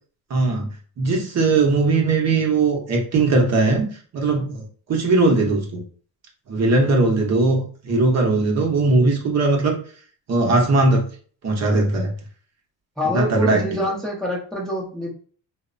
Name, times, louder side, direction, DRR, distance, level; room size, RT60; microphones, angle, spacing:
voice 1, 0.3-0.7 1.0-3.9 4.1-5.8 6.5-9.8 10.3-11.1 11.4-12.1 13.1-13.8, right 3 dB, 40° right, 0 dB, 0.8 m, -19 dB
voice 2, 13.0-15.1, equal, ahead, -3 dB, 0.6 m, -25 dB
2.8 x 2.1 x 2.5 m, 0.44 s
cardioid pair, 95°, 40 cm